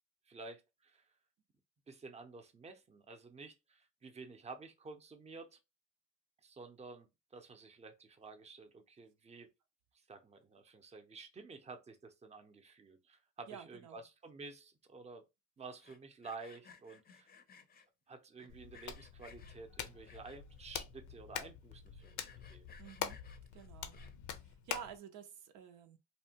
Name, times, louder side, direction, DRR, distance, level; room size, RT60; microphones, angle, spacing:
voice 1, 0.3-1.1 1.9-5.6 6.4-9.5 10.1-15.2 15.6-17.3 18.1-22.7, right 4 dB, 20° right, 0.6 m, -51 dB
voice 2, 13.5-14.0 22.8-23.2 23.5-24.0 24.4-26.0, right 8 dB, 85° right, 0.6 m, -50 dB
Sawing, 15.7-17.9 18.4-19.6 20.0-20.6 21.1-21.2 21.4-21.5 21.9-24.4, left 6 dB, 30° left, 0.5 m, -60 dB
Hands, 18.5-25.0, left 8 dB, 80° left, 0.5 m, -45 dB
2.8 x 2.1 x 2.7 m
cardioid pair, 90°, 30 cm